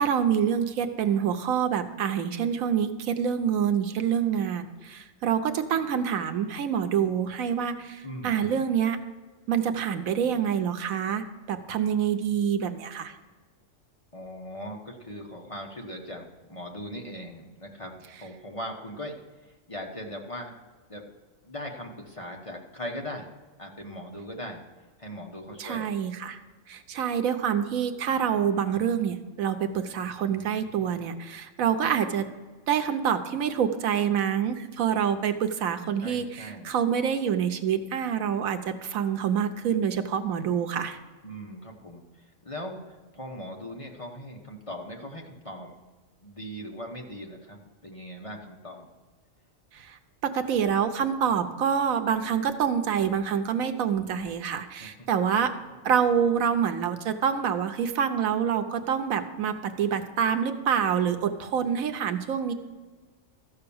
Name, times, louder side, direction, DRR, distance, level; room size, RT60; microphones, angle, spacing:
voice 1, 0.0-9.0 9.5-13.1 25.6-26.4 26.7-32.3 32.7-41.0 49.7-50.0 50.2-55.5 55.8-62.5, right 8 dB, 80° right, 8 dB, 1.2 m, -26 dB
voice 2, 8.0-8.6 14.1-19.1 19.4-20.5 20.9-21.0 21.4-23.3 23.6-24.6 25.0-25.9 36.0-36.7 41.2-45.8 46.2-48.9 54.8-55.1 55.4-55.6, equal, 25° left, 1 dB, 1.0 m, -40 dB
13.5 x 5.8 x 7.0 m, 1.3 s
omnidirectional pair, 1.4 m